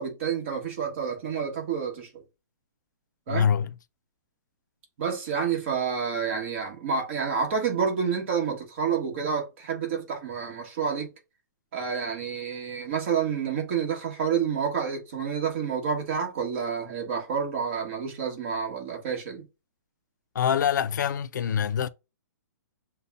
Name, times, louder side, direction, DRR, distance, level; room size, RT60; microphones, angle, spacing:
voice 1, 0.0-2.2 3.3-3.5 5.0-11.1 11.7-19.4, right 6 dB, 40° right, 1.5 m, -29 dB
voice 2, 3.3-3.7 20.3-21.9, left 8 dB, 75° left, 0.4 m, -25 dB
6.7 x 2.3 x 2.5 m
hypercardioid pair, 165°, 10 cm